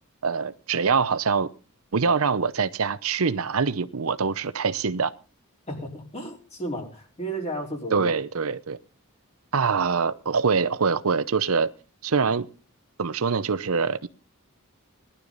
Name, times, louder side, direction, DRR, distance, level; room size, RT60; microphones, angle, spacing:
voice 1, 0.2-1.5 1.9-5.1 7.9-8.8 9.5-11.7 12.0-12.5 13.0-14.1, right 5 dB, 75° right, 0.7 m, -24 dB
voice 2, 5.7-8.2, right 1 dB, 30° left, 4.4 m, -33 dB
19.0 x 11.5 x 4.0 m
head